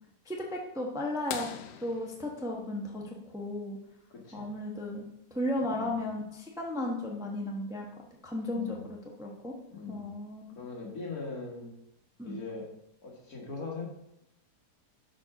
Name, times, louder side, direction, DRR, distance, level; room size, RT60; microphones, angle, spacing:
voice 1, 0.3-1.5 1.8-3.8 4.3-7.9 8.2-9.5 9.9-10.4 12.2-12.4, left 1 dB, 5° right, 0 dB, 0.8 m, -35 dB
sound 1, 1.3-3.7 5.7-5.8 8.0-8.1 9.8-10.1 10.9-11.0, left 9 dB, 85° left, 1.2 m, -43 dB
voice 2, 4.1-4.5 5.6-6.0 8.5-8.9 9.7-10.1 10.6-11.7 12.2-13.8, left 4 dB, 65° left, -1 dB, 2.2 m, -41 dB
6.3 x 4.8 x 5.9 m, 0.80 s
omnidirectional pair, 1.8 m